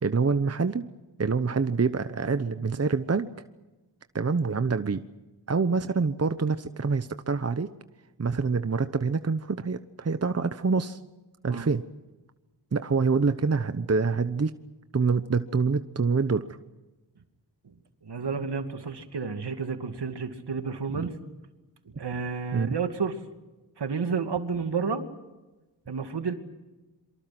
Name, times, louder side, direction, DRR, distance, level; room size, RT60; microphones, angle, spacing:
voice 1, 0.0-0.8 1.2-3.3 4.1-5.0 5.5-7.7 8.2-11.0 11.4-11.8 12.7-14.6 14.9-16.5 20.9-21.1 22.5-22.7, right 4 dB, 35° right, 10 dB, 1.0 m, -26 dB
voice 2, 18.0-21.2 21.9-23.2 23.8-25.0 25.9-26.3, right 5 dB, 70° right, 6 dB, 2.6 m, -31 dB
27.5 x 24.0 x 6.1 m, 1.1 s
cardioid pair, 55°, 42 cm